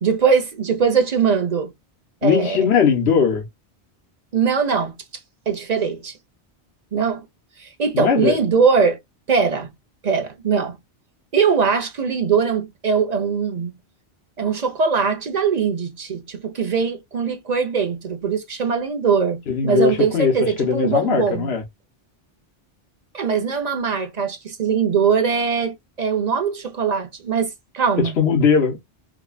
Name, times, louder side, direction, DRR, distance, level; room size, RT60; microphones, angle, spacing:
voice 1, 0.0-1.7 2.2-2.7 4.3-4.9 5.5-6.1 6.9-7.2 7.6-9.0 9.3-9.7 10.0-10.8 11.3-13.7 14.4-21.5 23.1-28.2, right 6 dB, 40° right, 0.9 m, -21 dB
voice 2, 2.2-3.5 7.9-8.4 19.5-21.6 28.0-29.0, left 6 dB, 70° left, 1.2 m, -19 dB
4.9 x 2.4 x 2.3 m
omnidirectional pair, 1.1 m